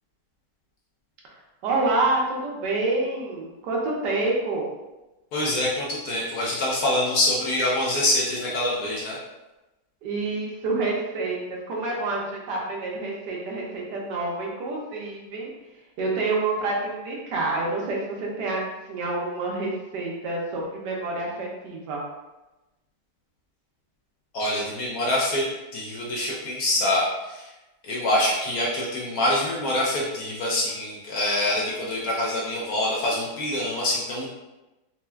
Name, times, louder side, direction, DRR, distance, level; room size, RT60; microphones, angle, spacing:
voice 1, 1.6-4.7 10.0-15.5 16.0-22.0, right 2 dB, 75° right, -2 dB, 1.3 m, -28 dB
voice 2, 5.3-9.2 24.3-25.4 25.7-27.4 27.8-34.3, left 1 dB, 65° left, -4 dB, 1.0 m, -25 dB
4.1 x 2.2 x 2.2 m, 1.0 s
omnidirectional pair, 1.9 m